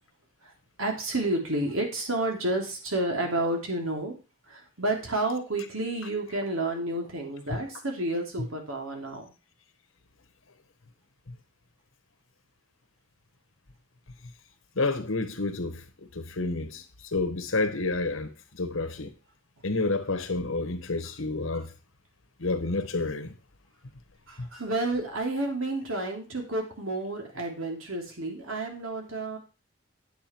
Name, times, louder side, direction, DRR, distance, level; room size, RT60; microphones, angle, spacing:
voice 1, 0.8-4.1 4.5-9.2 21.0-21.1 21.5-21.6 24.3-29.4, right 2 dB, 85° right, 3.0 m, -30 dB
voice 2, 14.8-15.8 16.1-16.8 17.1-18.3 18.6-19.1 19.6-21.7 22.4-23.3 24.4-24.5, left 3 dB, 80° left, 1.3 m, -29 dB
8.8 x 8.5 x 4.5 m
head